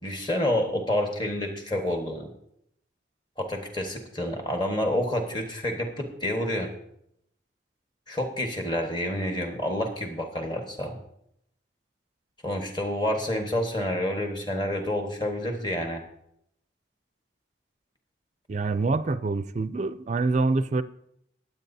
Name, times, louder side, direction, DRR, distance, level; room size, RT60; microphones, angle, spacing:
voice 1, 0.0-2.3 3.4-6.7 8.1-11.0 12.4-16.0, left 1 dB, 25° left, 3 dB, 1.4 m, -28 dB
voice 2, 18.5-20.8, right 3 dB, 40° right, 13 dB, 0.4 m, -26 dB
22.5 x 8.1 x 2.7 m, 0.76 s
head